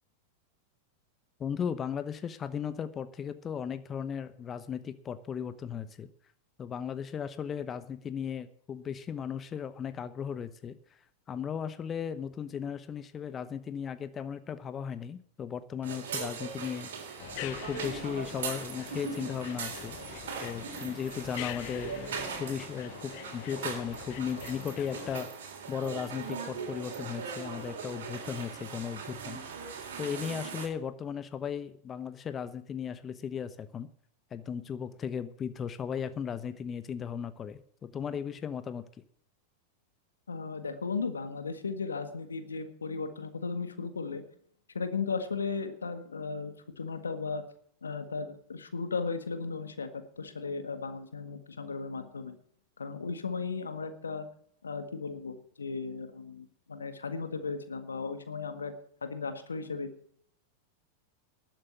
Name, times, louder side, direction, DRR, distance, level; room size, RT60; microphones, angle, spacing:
voice 1, 1.4-6.1 6.6-11.0 11.3-16.9 17.4-20.0 20.4-29.4 30.0-33.9 34.3-38.9, left 7 dB, 25° left, 12 dB, 0.9 m, -36 dB
sound 1, 15.8-30.7, right 6 dB, 70° right, 3.4 m, -40 dB
sound 2, 17.2-25.2, left 18 dB, 55° left, 0.6 m, -44 dB
voice 2, 40.3-44.2 44.7-47.4 47.8-49.9 50.2-52.4 52.8-54.3 54.6-58.7 59.0-59.9, left 4 dB, 85° left, 9 dB, 1.6 m, -36 dB
12.0 x 7.7 x 8.1 m, 0.64 s
hypercardioid pair, 100°, 0 cm